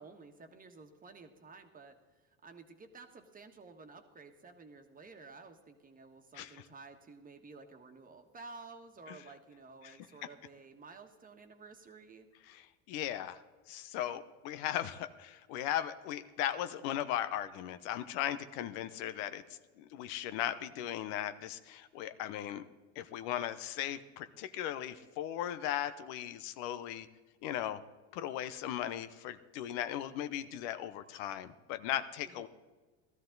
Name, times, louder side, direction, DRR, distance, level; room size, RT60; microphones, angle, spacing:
voice 1, 0.0-2.0 2.3-12.3 32.2-32.5, right 4 dB, 25° right, 6 dB, 1.5 m, -53 dB
voice 2, 12.5-13.4 13.7-19.4 19.8-22.6 23.0-27.1 27.4-27.8 28.1-32.5, left 11 dB, 70° left, 12 dB, 0.9 m, -37 dB
16.0 x 13.5 x 3.9 m, 1.3 s
supercardioid pair, 110°, 36 cm